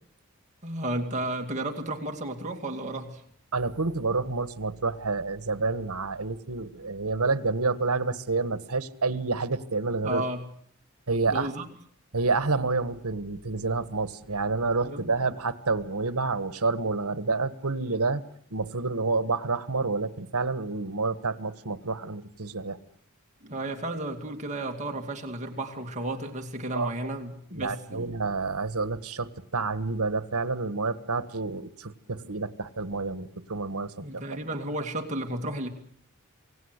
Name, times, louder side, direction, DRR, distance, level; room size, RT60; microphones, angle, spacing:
voice 1, 0.6-3.2 10.0-10.4 11.3-11.7 14.8-15.1 23.4-28.1 34.0-35.7, right 1 dB, 30° right, 3 dB, 2.5 m, -33 dB
voice 2, 3.5-10.2 11.1-11.5 12.1-18.2 18.5-22.8 26.7-26.9 27.5-34.2, right 3 dB, 85° right, 13 dB, 1.4 m, -29 dB
27.5 x 18.0 x 8.2 m, 0.63 s
head